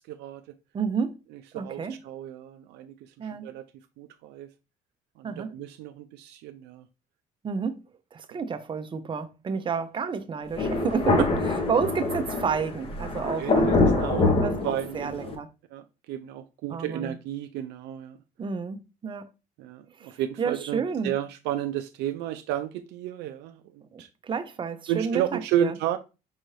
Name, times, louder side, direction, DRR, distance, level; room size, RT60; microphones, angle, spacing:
voice 1, 0.1-0.4 1.5-2.9 3.2-3.6 4.0-4.5 5.2-6.8 8.3-8.4 13.4-14.3 14.6-15.4 15.7-18.2 19.6-24.1 24.9-26.0, right 11 dB, 85° right, 0.4 m, -32 dB
voice 2, 0.7-1.2 1.5-2.0 3.2-3.5 5.2-5.5 7.4-7.8 8.1-11.3 11.7-15.5 16.7-17.2 18.4-19.2 20.0-21.2 23.9-25.7, right 6 dB, 30° right, 0.5 m, -30 dB
Thunder, 10.5-15.3, left 2 dB, 35° left, 0.9 m, -25 dB
5.5 x 2.5 x 3.1 m
cardioid pair, 110°, 17 cm